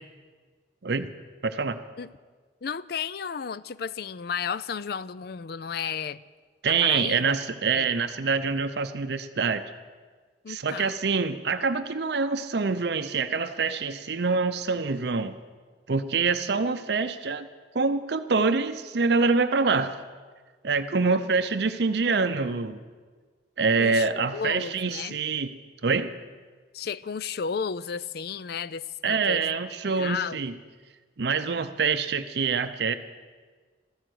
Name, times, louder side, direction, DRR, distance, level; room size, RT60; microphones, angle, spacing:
voice 1, 1.4-1.8 6.6-9.6 10.5-15.3 15.9-17.5 17.7-20.0 20.6-22.8 23.6-25.5 25.8-26.1 29.0-30.5 31.2-33.0, right 4 dB, 60° right, 10 dB, 0.6 m, -25 dB
voice 2, 2.6-6.2 6.7-7.4 7.7-7.9 10.4-11.0 21.0-21.4 23.8-25.2 26.7-29.5 29.9-30.4, left 6 dB, 55° left, 18 dB, 0.4 m, -33 dB
13.5 x 13.0 x 7.8 m, 1.5 s
head